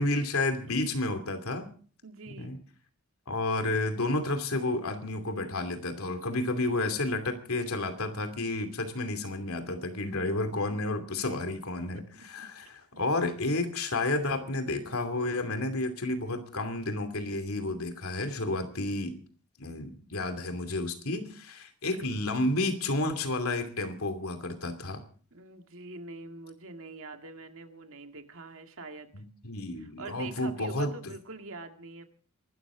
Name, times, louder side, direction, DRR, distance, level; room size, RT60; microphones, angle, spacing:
voice 1, 0.0-1.7 2.4-2.6 3.3-19.2 19.6-25.0 29.1-30.9, left 2 dB, 80° left, 7 dB, 2.7 m, -31 dB
voice 2, 2.0-2.6 11.9-12.5 21.8-22.1 25.3-29.1 29.8-32.0, right 3 dB, 65° right, 6 dB, 2.0 m, -44 dB
24.5 x 13.0 x 3.8 m, 0.43 s
head